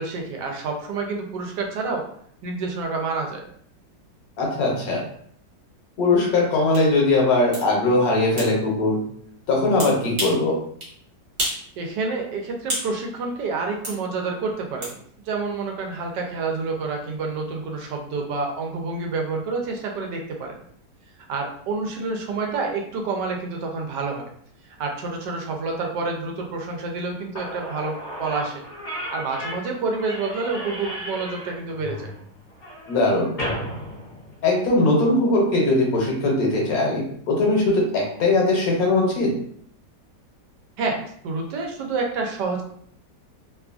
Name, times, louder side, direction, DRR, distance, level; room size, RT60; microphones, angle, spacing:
voice 1, 0.0-2.0 2.4-3.5 11.8-20.6 21.2-24.2 24.8-28.6 29.1-32.1 40.8-42.6, right 4 dB, 85° right, 2 dB, 1.2 m, -28 dB
voice 2, 4.4-5.0 6.0-9.0 9.5-10.5 32.9-33.3 34.4-39.3, left 2 dB, 65° left, -2 dB, 1.1 m, -20 dB
sound 1, 6.7-6.9 7.5-7.7 8.4-8.5 9.8-10.4 10.8-10.9 11.4-11.7 12.0-12.9 13.8-14.0 14.8-15.0, right 1 dB, 50° right, 1.3 m, -29 dB
Slam / Squeak, 27.0-27.1 27.3-34.8, equal, 45° left, 0.6 m, -34 dB
2.9 x 2.3 x 2.4 m, 0.64 s
omnidirectional pair, 1.8 m